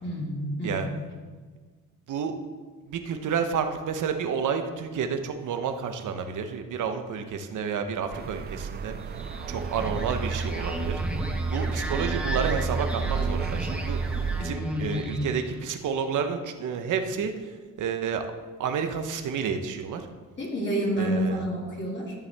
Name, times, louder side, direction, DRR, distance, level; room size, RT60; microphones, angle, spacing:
voice 1, 0.0-0.9 14.4-15.3 20.4-22.1, equal, 35° left, -4 dB, 2.7 m, -29 dB
voice 2, 2.1-2.4 2.9-9.2 9.5-11.0 11.5-14.0 14.4-18.2 18.6-20.1 21.0-21.4, right 6 dB, 70° right, 7 dB, 1.0 m, -30 dB
sound 1, 8.1-14.4, right 6 dB, 30° right, 0.4 m, -33 dB
sound 2, 9.0-15.7, right 2 dB, 5° right, 1.1 m, -32 dB
12.5 x 6.9 x 3.5 m, 1.4 s
cardioid pair, 90°, 32 cm